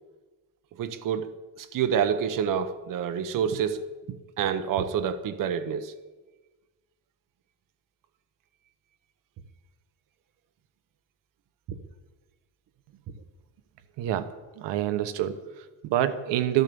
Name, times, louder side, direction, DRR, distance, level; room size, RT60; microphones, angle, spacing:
voice 1, 0.8-1.3 1.6-3.8 4.4-5.9 11.7-11.8, right 8 dB, 50° right, 9 dB, 1.1 m, -27 dB
voice 2, 14.0-16.6, right 12 dB, 75° right, 11 dB, 1.2 m, -27 dB
14.0 x 13.0 x 7.0 m, 1.2 s
cardioid pair, 145°, 43 cm